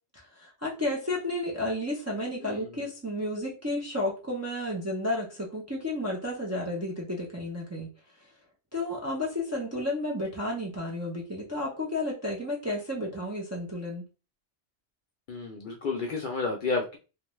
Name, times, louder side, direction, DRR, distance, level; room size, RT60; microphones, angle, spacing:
voice 1, 0.1-7.9 8.7-14.0, left 1 dB, 20° right, -3 dB, 0.4 m, -32 dB
voice 2, 2.4-2.9 15.3-17.0, left 3 dB, 60° left, 0 dB, 0.5 m, -31 dB
2.5 x 2.2 x 3.0 m, 0.33 s
omnidirectional pair, 1.2 m